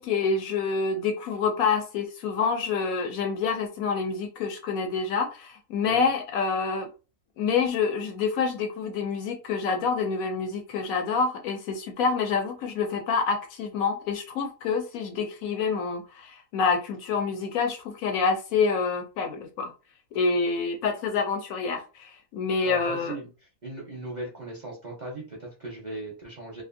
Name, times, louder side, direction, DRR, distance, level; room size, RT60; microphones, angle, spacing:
voice 1, 0.0-6.9 7.4-19.7 20.1-23.1, left 5 dB, 70° left, 0.9 m, -27 dB
voice 2, 22.6-23.3 23.6-26.6, right 2 dB, 45° right, 0.6 m, -37 dB
2.6 x 2.4 x 2.5 m
omnidirectional pair, 1.6 m